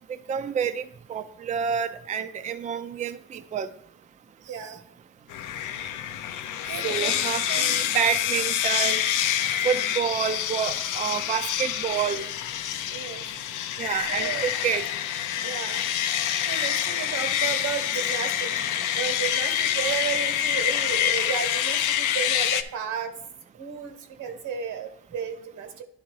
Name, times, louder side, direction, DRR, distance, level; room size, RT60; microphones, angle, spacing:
voice 1, 0.3-0.8 1.1-3.7 4.6-4.7 6.8-9.0 9.6-12.3 13.8-14.8, right 8 dB, 25° right, 10 dB, 0.4 m, -28 dB
sound 1, 5.3-22.6, left 10 dB, 85° left, 0.5 m, -27 dB
voice 2, 6.7-7.8 12.9-13.2 14.1-14.5 15.4-15.9 16.5-18.5 18.9-23.1 23.5-25.8, right 7 dB, 90° right, 7 dB, 1.1 m, -33 dB
10.5 x 3.6 x 4.6 m, 0.69 s
cardioid pair, 90°, 30 cm